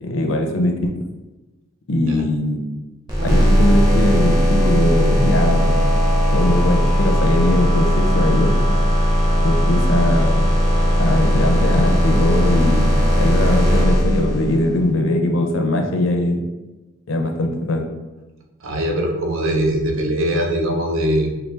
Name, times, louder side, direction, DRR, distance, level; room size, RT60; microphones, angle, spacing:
voice 1, 0.0-1.0 1.9-2.6 3.2-5.9 6.3-8.6 9.4-10.5 11.0-16.4 17.1-17.9, left 1 dB, 75° left, 3 dB, 0.6 m, -20 dB
sound 1, 3.1-14.7, equal, 20° right, 0.8 m, -17 dB
sound 2, 3.2-14.0, equal, 40° right, 0.4 m, -28 dB
voice 2, 18.6-21.3, right 1 dB, 75° right, 1 dB, 0.7 m, -21 dB
4.5 x 2.4 x 3.2 m, 1.1 s
head